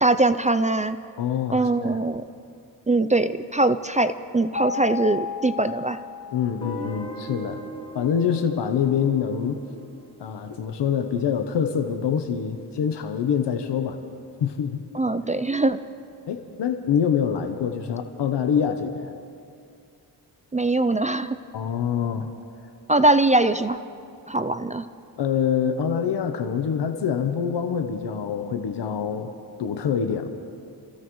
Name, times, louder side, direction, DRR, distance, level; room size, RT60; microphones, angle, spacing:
voice 1, 0.0-1.0 1.5-2.2 2.9-6.0 14.9-15.8 20.5-21.4 22.9-23.8 24.3-24.9, right 2 dB, 20° right, 11 dB, 0.4 m, -22 dB
voice 2, 1.2-2.0 6.3-7.6 7.9-9.6 10.2-14.0 14.4-14.8 16.3-19.1 21.5-22.3 25.2-30.3, left 7 dB, 85° left, 6 dB, 1.0 m, -25 dB
sound 1, 4.5-7.5, left 5 dB, 45° left, 2.7 m, -33 dB
Guitar, 6.6-11.5, equal, 15° left, 1.7 m, -40 dB
28.0 x 15.5 x 3.1 m, 2.4 s
cardioid pair, 95°, 41 cm